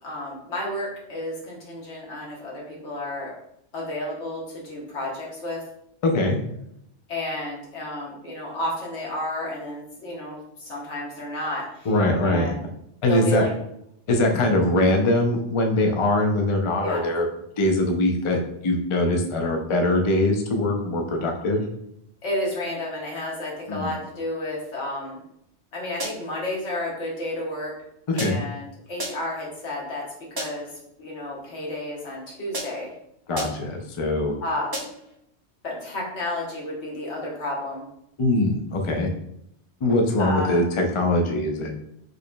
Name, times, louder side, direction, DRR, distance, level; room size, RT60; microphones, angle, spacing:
voice 1, 0.0-3.3 3.7-5.6 7.1-12.6 13.1-13.5 16.8-17.0 22.2-25.2 25.7-27.7 28.1-30.0 30.3-32.9 34.4-34.8 35.6-37.9 40.2-40.6, left 1 dB, 85° left, -3 dB, 1.4 m, -31 dB
voice 2, 6.0-6.4 11.9-12.5 13.0-13.4 14.1-17.3 17.6-21.6 23.7-23.9 28.1-28.4 33.3-34.4 38.2-39.1 39.8-41.7, left 1 dB, 50° left, 3 dB, 0.4 m, -22 dB
sound 1, 26.0-26.4 28.2-28.6 29.0-29.4 30.4-30.8 32.5-33.0 33.4-33.8 34.7-35.1, equal, 30° right, 0.5 m, -34 dB
4.6 x 3.1 x 2.2 m, 0.76 s
omnidirectional pair, 1.2 m